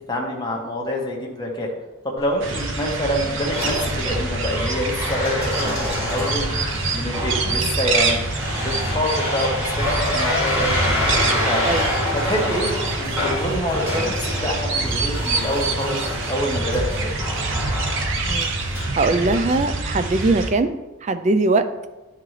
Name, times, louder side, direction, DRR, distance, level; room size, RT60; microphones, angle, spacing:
voice 1, 0.1-1.7 2.0-6.6 6.9-8.2 8.6-11.6 12.2-16.0 16.3-17.1, equal, 20° left, -1 dB, 1.1 m, -26 dB
sound 1, 2.2-19.7, left 1 dB, 15° right, 1.8 m, -27 dB
sound 2, 2.4-20.5, right 3 dB, 55° right, 0.8 m, -26 dB
voice 2, 19.0-20.7 21.0-21.7, right 3 dB, 30° right, 10 dB, 0.4 m, -21 dB
10.5 x 3.8 x 3.2 m, 1.1 s
head